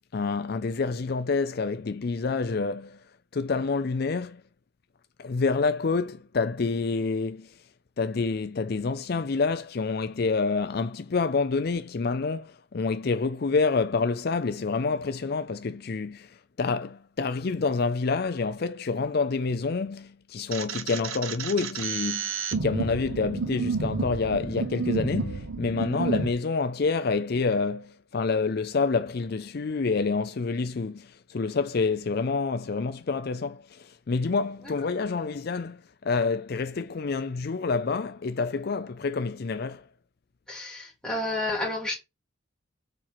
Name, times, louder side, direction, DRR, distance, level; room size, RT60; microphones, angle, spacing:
voice 1, 0.1-3.0 3.3-4.4 5.2-7.6 8.0-39.8, left 4 dB, 50° left, 0.4 m, -28 dB
sound 1, 20.5-26.3, right 4 dB, 90° right, 1.1 m, -31 dB
voice 2, 40.5-41.9, left 2 dB, 5° left, 3.1 m, -31 dB
7.6 x 4.4 x 5.8 m
head